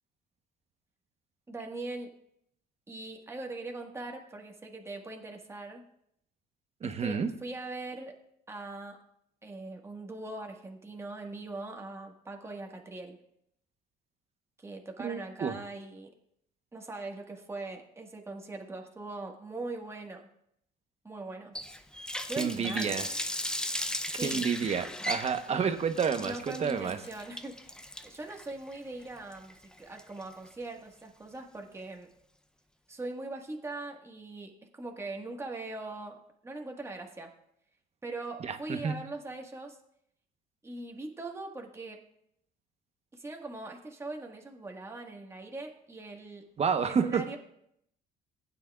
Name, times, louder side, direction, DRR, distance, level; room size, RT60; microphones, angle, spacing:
voice 1, 1.5-2.1 2.9-5.8 6.8-8.1 8.5-9.0 9.4-13.2 14.6-16.1 16.7-20.3 21.0-21.5 22.3-23.1 24.1-24.5 25.5-25.7 26.2-32.1 32.9-36.2 36.4-37.3 38.0-39.8 40.6-42.0 43.1-46.4 46.8-47.4, right 2 dB, 15° right, 2 dB, 1.6 m, -41 dB
voice 2, 6.8-7.3 15.0-15.6 22.4-23.1 24.2-27.0 38.4-38.9 46.6-47.2, right 6 dB, 40° right, 8 dB, 1.0 m, -30 dB
Water tap faucet, 21.5-30.5, left 1 dB, 5° left, 0.6 m, -37 dB
16.0 x 9.2 x 2.4 m, 0.73 s
cardioid pair, 110°, 17 cm